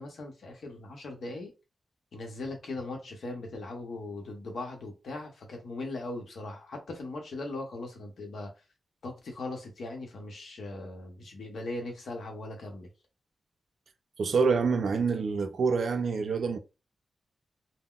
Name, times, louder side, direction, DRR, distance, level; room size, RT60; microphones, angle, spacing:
voice 1, 0.0-1.5 2.1-8.5 9.0-12.9, left 2 dB, 70° left, 0.8 m, -39 dB
voice 2, 14.2-16.6, right 5 dB, 60° right, 0.4 m, -26 dB
3.7 x 2.1 x 2.3 m
wide cardioid pair, 175°, 0 cm